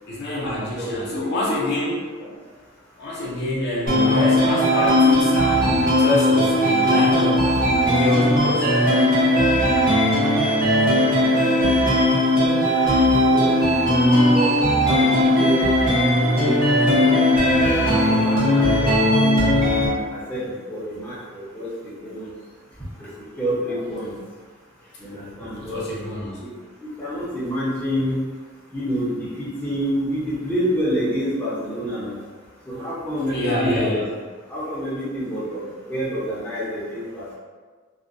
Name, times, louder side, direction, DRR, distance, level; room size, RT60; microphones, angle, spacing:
voice 1, 0.1-2.3 3.0-7.5 7.8-8.7 25.6-26.5 33.3-34.0, left 1 dB, 50° left, -6 dB, 0.6 m, -26 dB
voice 2, 0.7-1.6 11.2-12.1 12.3-12.5 13.0-13.5 14.1-14.5 14.9-15.6 16.2-19.2 19.9-22.3 23.0-23.1 23.4-24.1 25.0-25.8 26.4-26.5 26.8-28.2 28.7-32.2 32.7-34.0 34.5-37.4, equal, 10° left, -10 dB, 0.6 m, -28 dB
sound 1, 3.9-19.9, left 1 dB, 45° right, 0.8 m, -18 dB
2.4 x 2.1 x 2.5 m, 1.5 s
head